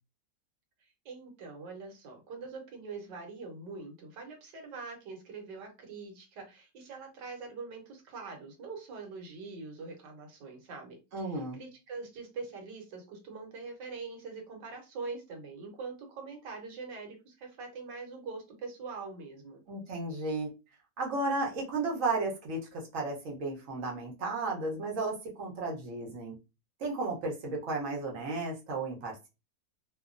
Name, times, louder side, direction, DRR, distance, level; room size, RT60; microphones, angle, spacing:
voice 1, 1.0-19.6, right 4 dB, 70° right, 3 dB, 1.4 m, -43 dB
voice 2, 11.1-11.6 19.7-20.5 21.0-26.4 26.8-29.3, right 3 dB, 55° right, -1 dB, 1.0 m, -34 dB
3.1 x 2.2 x 2.4 m, 0.27 s
omnidirectional pair, 2.0 m